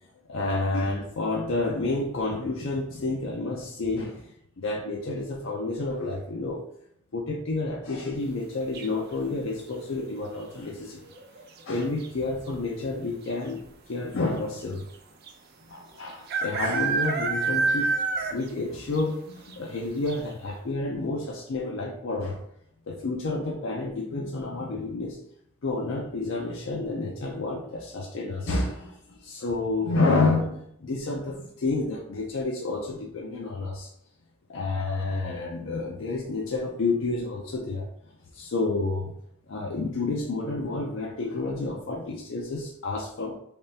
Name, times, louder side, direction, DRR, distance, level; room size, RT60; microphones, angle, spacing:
voice 1, 0.3-6.6 7.1-11.0 11.7-13.6 13.9-14.8 15.7-17.9 18.3-22.4 22.9-25.2 25.6-33.9 34.5-37.9 38.3-39.1 39.5-43.3, left 3 dB, 65° left, -1 dB, 0.5 m, -29 dB
sound 1, 8.7-9.2 11.0-11.4 11.7-11.8 12.0-12.5 13.3-13.4 13.6-13.7 15.3-15.4 16.3-18.6 18.9-19.0 19.5-19.6 20.1-20.2, right 4 dB, 50° right, 0.5 m, -27 dB
3.4 x 3.2 x 2.8 m, 0.70 s
head